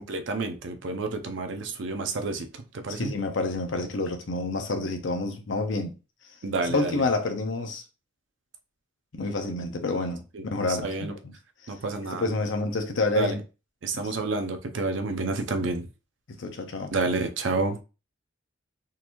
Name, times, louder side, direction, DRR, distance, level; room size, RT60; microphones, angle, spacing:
voice 1, 0.0-2.5 2.8-3.1 6.4-7.0 10.3-11.1 11.7-12.2 13.2-13.3 13.8-15.9 16.9-17.8, right 3 dB, 75° right, 0.6 m, -29 dB
voice 2, 2.9-5.9 6.6-7.8 9.1-11.3 12.1-13.4 13.9-14.1 16.4-16.9, left 3 dB, 75° left, 0.7 m, -28 dB
3.8 x 3.0 x 2.6 m
head